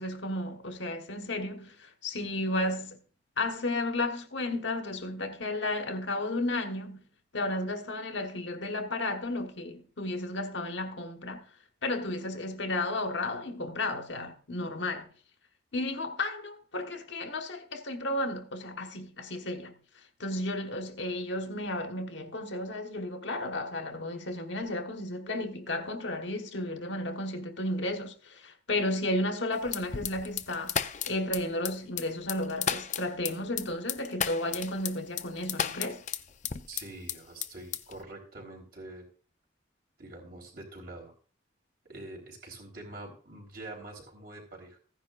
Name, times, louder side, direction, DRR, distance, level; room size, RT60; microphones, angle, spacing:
voice 1, 0.0-3.0 3.4-7.0 7.3-11.5 11.8-15.1 15.7-19.7 20.2-36.0, left 2 dB, 70° left, 1.4 m, -33 dB
sound 1, 29.7-37.2 37.4-38.0, left 8 dB, 40° left, 0.5 m, -33 dB
voice 2, 36.7-39.1 40.0-41.1 41.9-44.8, right 2 dB, 50° right, 3.8 m, -45 dB
15.5 x 10.0 x 2.5 m
head